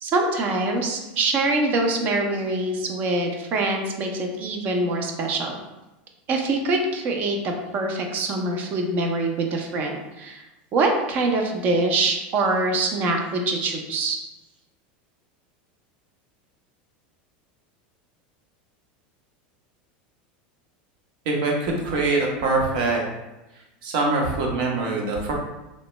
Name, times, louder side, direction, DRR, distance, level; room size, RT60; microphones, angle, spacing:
voice 1, 0.0-5.6 6.3-10.5 10.7-14.2, right 2 dB, 35° right, 3 dB, 0.5 m, -24 dB
voice 2, 21.3-23.0 23.8-25.3, right 3 dB, 65° right, -1 dB, 0.8 m, -23 dB
3.1 x 2.1 x 3.0 m, 1.0 s
supercardioid pair, 150°, 5 cm